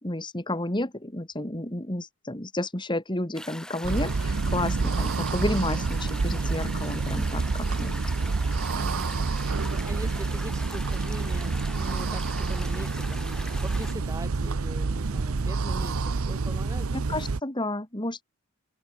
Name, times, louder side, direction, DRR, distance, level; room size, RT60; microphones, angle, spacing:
voice 1, 0.0-8.0 16.9-18.2, left 1 dB, 20° left, 2.3 m, -31 dB
sound 1, 3.3-13.9, left 1 dB, 5° left, 6.8 m, -42 dB
sound 2, 3.8-17.4, right 4 dB, 85° right, 0.7 m, -28 dB
voice 2, 8.7-17.2, right 1 dB, 15° right, 3.1 m, -42 dB
open air
head